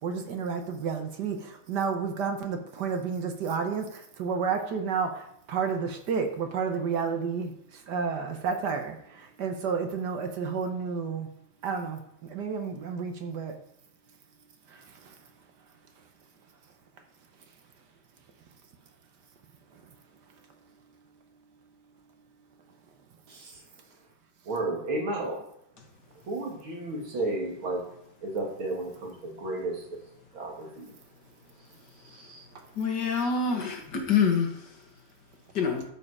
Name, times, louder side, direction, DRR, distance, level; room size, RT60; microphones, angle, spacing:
voice 1, 0.0-11.3 11.6-13.6 14.7-15.2 19.7-19.8 32.5-32.6, right 5 dB, 60° right, 6 dB, 1.4 m, -31 dB
voice 2, 23.3-23.6 24.4-25.4 26.2-27.9 28.2-30.0 30.3-31.0 31.6-31.7 31.9-32.5, right 2 dB, 85° right, 0 dB, 2.9 m, -33 dB
voice 3, 32.8-34.7 35.5-35.8, left 6 dB, 60° left, 2 dB, 2.0 m, -26 dB
13.0 x 5.0 x 4.8 m, 0.75 s
omnidirectional pair, 2.2 m